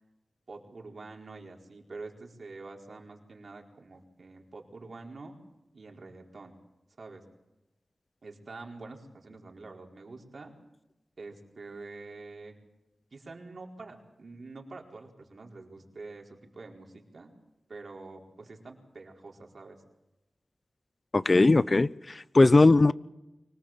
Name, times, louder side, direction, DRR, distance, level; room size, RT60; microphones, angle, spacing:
voice 1, 0.5-5.4 5.7-6.5 7.0-7.2 8.2-10.5 11.2-12.6 13.1-17.3 17.7-19.8, right 3 dB, 70° right, 1 dB, 4.6 m, -46 dB
voice 2, 21.1-22.9, left 2 dB, 45° left, 17 dB, 0.7 m, -20 dB
25.0 x 18.5 x 7.5 m, 0.98 s
cardioid pair, 50°, 0 cm